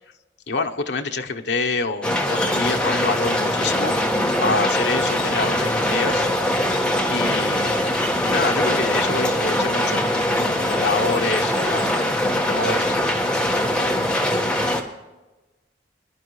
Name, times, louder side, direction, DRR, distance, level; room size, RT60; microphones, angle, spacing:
voice 1, 0.5-4.0 4.4-6.3 7.1-7.8 8.2-10.1 10.4-11.9 12.5-13.0, left 4 dB, 70° left, 5 dB, 0.9 m, -26 dB
sound 1, 2.0-14.8, left 1 dB, 5° left, 1.5 m, -22 dB
23.0 x 11.5 x 3.2 m, 1.1 s
head